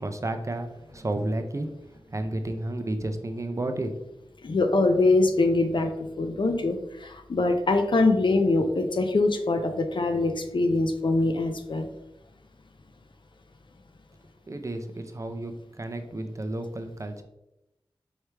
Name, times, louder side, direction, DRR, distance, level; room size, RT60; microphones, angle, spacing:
voice 1, 0.0-3.9 4.3-4.4 14.5-17.2, right 1 dB, 35° right, 6 dB, 0.5 m, -32 dB
voice 2, 4.4-11.9, left 2 dB, 55° left, 6 dB, 0.5 m, -23 dB
4.7 x 3.2 x 3.3 m, 0.90 s
wide cardioid pair, 65°, 10 cm